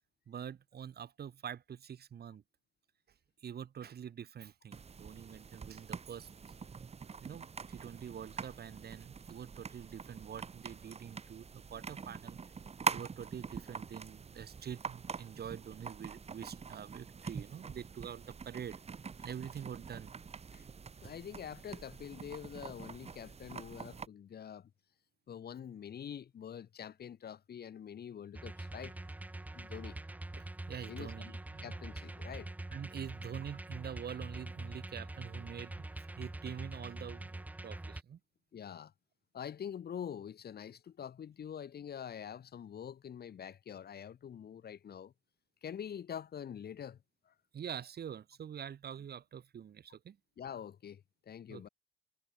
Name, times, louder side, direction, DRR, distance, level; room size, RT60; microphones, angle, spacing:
voice 1, 0.3-2.4 3.4-6.3 7.2-12.4 12.9-18.8 19.2-20.1 30.3-31.7 32.7-38.2 47.5-50.2 51.5-51.7, right 8 dB, 55° right, 2.0 m, -46 dB
sound 1, 4.7-24.1, right 5 dB, 30° right, 1.1 m, -44 dB
voice 2, 21.0-24.7 25.3-29.0 29.5-30.0 30.9-32.5 38.5-38.9 39.3-45.1 45.6-47.0 47.3-47.4 50.4-51.7, left 8 dB, 55° left, 1.7 m, -45 dB
sound 2, 28.3-38.0, right 2 dB, 10° right, 0.5 m, -44 dB
cardioid pair, 90°, 20 cm